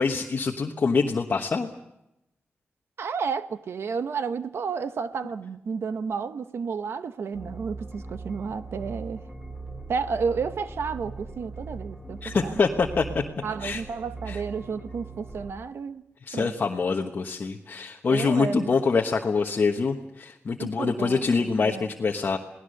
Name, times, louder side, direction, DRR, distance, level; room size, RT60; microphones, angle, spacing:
voice 1, 0.0-1.7 12.2-13.2 13.6-13.8 14.3-14.4 16.2-22.4, left 4 dB, 45° left, 1.2 m, -25 dB
voice 2, 3.0-9.2 9.9-12.7 13.4-16.0 16.3-16.5 18.1-18.7 20.6-21.9, right 5 dB, 75° right, 0.9 m, -31 dB
sound 1, 7.3-15.5, right 3 dB, 5° right, 3.6 m, -40 dB
28.5 x 18.5 x 6.6 m
wide cardioid pair, 145°, 4 cm